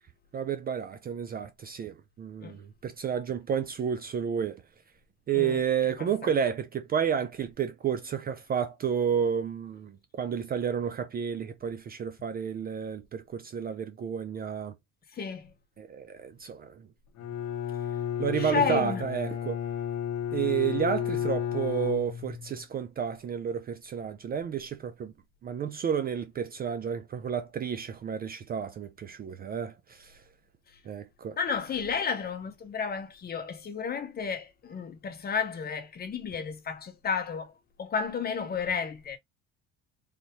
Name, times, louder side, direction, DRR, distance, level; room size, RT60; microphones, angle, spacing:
voice 1, 0.3-4.6 5.3-14.7 15.8-16.8 18.2-19.6 20.3-25.1 25.4-30.2 30.9-31.4, right 8 dB, 30° right, 0.4 m, -31 dB
voice 2, 6.0-6.3 15.2-15.5 18.4-19.0 31.4-37.5 37.8-39.2, left 6 dB, 30° left, 0.9 m, -32 dB
Bowed string instrument, 17.2-22.6, left 9 dB, 65° left, 0.9 m, -32 dB
3.4 x 2.6 x 2.9 m
cardioid pair, 115°, 31 cm